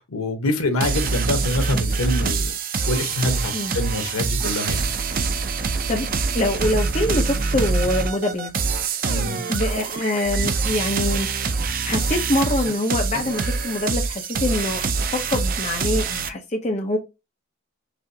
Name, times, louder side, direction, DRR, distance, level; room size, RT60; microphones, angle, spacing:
voice 1, 0.0-2.5 2.9-4.9 9.1-9.4, left 1 dB, 90° left, 1.2 m, -25 dB
sound 1, 0.8-16.3, right 4 dB, 40° right, 0.5 m, -25 dB
voice 2, 5.9-8.5 9.5-11.3 11.8-17.0, left 1 dB, 35° left, 0.8 m, -25 dB
6.1 x 2.7 x 2.8 m
head